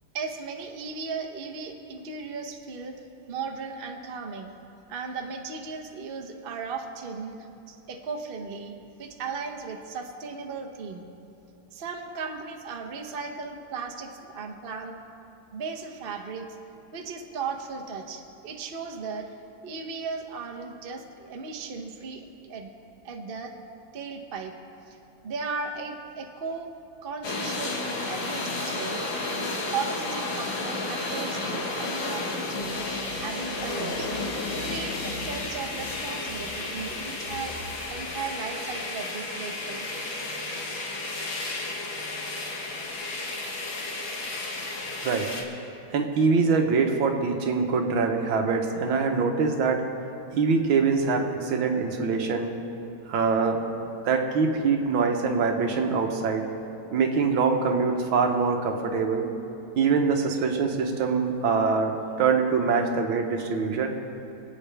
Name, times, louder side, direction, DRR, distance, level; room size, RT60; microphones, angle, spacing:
voice 1, 0.1-2.9 3.3-4.5 4.9-7.4 7.7-11.0 11.7-15.0 15.5-16.5 16.9-19.3 19.6-22.7 23.0-23.6 23.9-24.5 24.9-25.0 25.2-26.7 27.0-29.0 29.4-32.9 33.2-34.1 34.5-37.6 37.9-39.9, right 5 dB, 45° right, 4 dB, 0.7 m, -36 dB
sound 1, 27.2-45.4, left 2 dB, 70° left, 2.1 m, -32 dB
sound 2, 32.6-37.9, left 1 dB, 45° left, 1.8 m, -43 dB
voice 2, 45.9-49.8 50.3-52.5 53.1-53.6 54.0-56.5 56.9-59.3 59.8-63.9, right 5 dB, 75° right, 4 dB, 1.8 m, -24 dB
26.0 x 8.8 x 3.4 m, 2.7 s
omnidirectional pair, 2.3 m